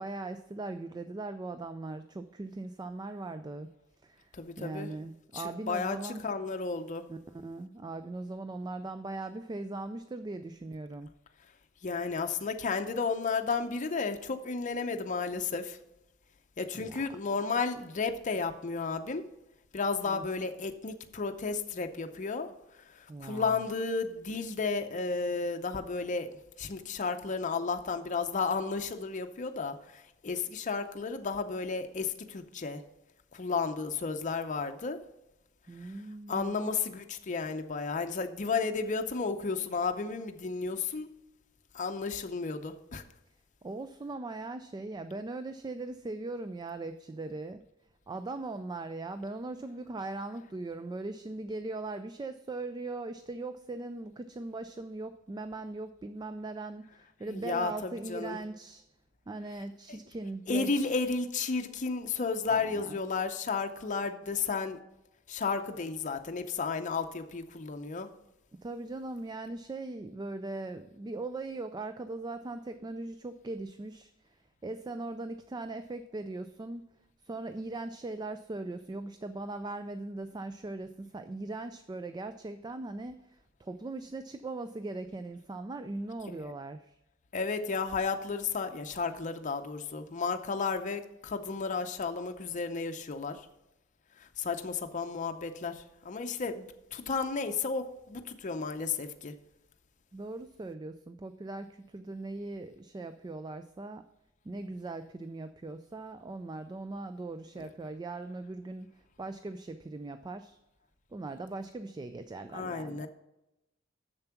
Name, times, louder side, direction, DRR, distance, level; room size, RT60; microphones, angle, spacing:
voice 1, 0.0-3.7 4.0-4.3 4.6-6.3 7.1-11.1 16.7-17.2 20.0-20.3 23.1-23.7 35.7-36.6 43.6-47.6 48.1-58.8 59.3-61.0 62.5-63.0 68.6-74.1 74.6-76.9 77.2-86.9 100.1-104.0 104.5-108.9 109.2-110.6 111.1-113.1, right 2 dB, 20° right, 10 dB, 0.3 m, -40 dB
voice 2, 4.3-4.9 5.3-7.0 11.8-15.8 16.6-19.2 19.7-22.5 23.2-26.3 26.6-32.8 33.3-35.0 36.3-41.1 41.7-43.0 57.3-58.4 60.5-64.8 65.3-68.1 86.4-86.5 87.3-93.4 94.4-99.3 107.6-107.7 112.5-113.1, left 4 dB, 40° left, 6 dB, 0.6 m, -33 dB
7.1 x 6.8 x 5.8 m, 0.92 s
head